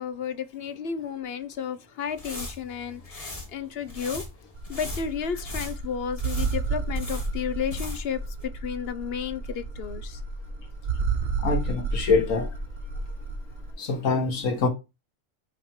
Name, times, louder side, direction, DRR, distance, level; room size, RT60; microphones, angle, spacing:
voice 1, 0.0-4.2 4.7-8.2 8.6-10.2, left 7 dB, 55° left, 0.9 m, -32 dB
sound 1, 2.1-8.1 8.4-8.5, left 2 dB, 30° left, 1.8 m, -38 dB
sound 2, 4.6-13.7, right 4 dB, 50° right, 1.3 m, -31 dB
voice 2, 11.4-12.5 13.8-14.7, left 4 dB, 85° left, 1.8 m, -24 dB
5.7 x 4.7 x 4.4 m
omnidirectional pair, 1.3 m